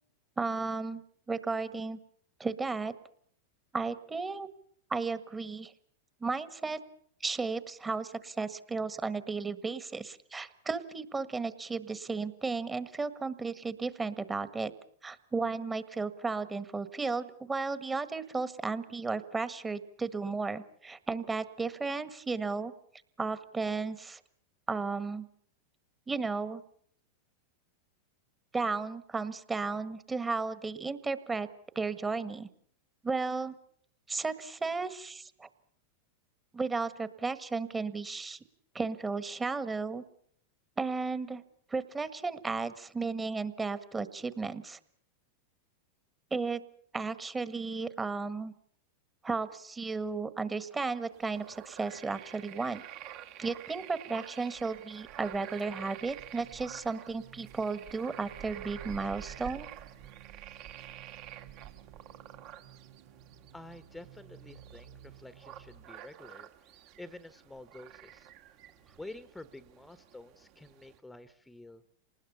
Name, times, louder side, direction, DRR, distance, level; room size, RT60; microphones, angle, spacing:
voice 1, 0.4-1.0 1.3-2.0 2.4-2.9 3.7-4.5 4.9-5.7 6.2-6.8 7.2-14.7 15.0-22.7 23.2-24.2 24.7-25.3 26.1-26.6 28.5-31.5 31.7-32.5 33.0-33.5 34.1-35.5 36.5-38.4 38.7-40.0 40.8-41.4 41.7-44.8 46.3-46.6 46.9-48.5 49.2-52.8 53.4-59.7, right 4 dB, 15° right, 13 dB, 1.7 m, -34 dB
sound 1, 51.1-71.0, right 11 dB, 50° right, 2.2 m, -49 dB
sound 2, 54.9-65.9, right 9 dB, 75° right, 2.3 m, -56 dB
voice 2, 63.5-68.3 69.0-71.8, left 2 dB, 5° left, 12 dB, 1.3 m, -49 dB
27.0 x 20.0 x 7.0 m, 0.63 s
hypercardioid pair, 95°, 0 cm